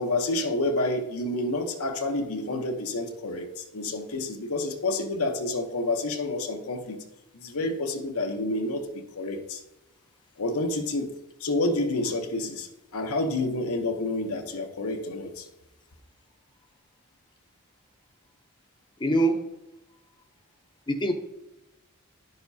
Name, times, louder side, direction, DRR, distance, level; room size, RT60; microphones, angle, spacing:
voice 1, 0.0-7.0 7.3-9.6 10.4-11.1 11.4-15.5, left 2 dB, 80° left, 0.9 m, -29 dB
voice 2, 19.0-19.4 20.9-21.1, right 1 dB, 20° left, 0.7 m, -23 dB
10.5 x 6.7 x 2.7 m
head